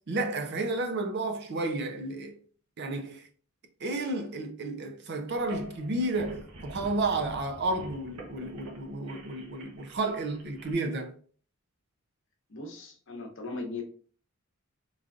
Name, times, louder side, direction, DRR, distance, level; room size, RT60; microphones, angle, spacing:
voice 1, 0.1-2.4 2.8-3.2 3.8-11.1, right 2 dB, 50° right, 0.5 m, -32 dB
sound 1, 5.4-10.7, right 2 dB, 85° right, 0.9 m, -47 dB
voice 2, 12.5-13.8, left 3 dB, 60° left, 0.8 m, -38 dB
3.7 x 3.1 x 2.4 m
head